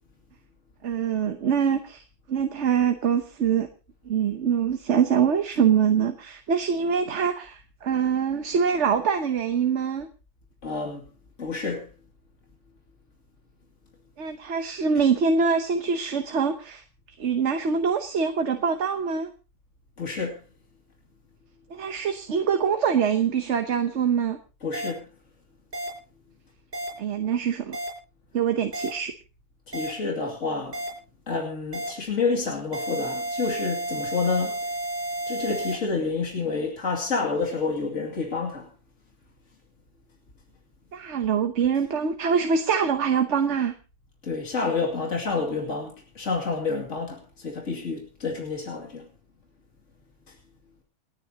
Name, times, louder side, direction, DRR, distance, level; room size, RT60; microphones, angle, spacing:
voice 1, 0.8-2.0 2.3-3.7 4.1-10.1 14.2-16.8 17.2-19.3 21.7-24.4 27.0-27.8 28.3-29.1 40.9-43.7, right 6 dB, 65° right, 7 dB, 1.3 m, -24 dB
voice 2, 10.6-11.0 11.4-11.9 20.0-20.4 24.6-25.1 29.7-30.8 31.3-34.6 35.3-38.7 44.2-49.1, left 4 dB, 70° left, 0 dB, 2.9 m, -29 dB
sound 1, 24.7-24.9 25.7-25.9 26.7-26.9 27.7-27.9 28.7-28.9 29.7-29.9 30.7-30.9 31.7-31.9 32.7-35.7, right 1 dB, 45° right, 7.2 m, -31 dB
28.5 x 9.6 x 2.9 m, 0.34 s
omnidirectional pair, 1.3 m